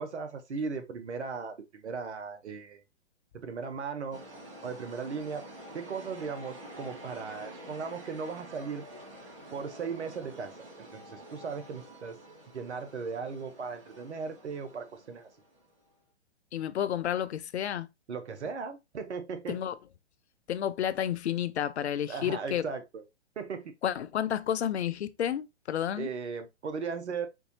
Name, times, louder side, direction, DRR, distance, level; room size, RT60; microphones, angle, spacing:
voice 1, 0.0-2.8 3.3-4.2 4.6-5.5 5.7-8.8 9.5-12.2 12.5-15.3 18.1-19.6 22.1-23.0 23.4-23.7 26.0-27.3, right 5 dB, 70° right, 1.0 m, -37 dB
sound 1, 4.1-15.9, right 1 dB, 50° right, 2.0 m, -48 dB
voice 2, 16.5-17.9 19.5-19.7 20.5-22.6 23.8-26.1, left 10 dB, 65° left, 0.5 m, -31 dB
4.3 x 2.6 x 2.8 m
figure-of-eight pair, 125°, 35 cm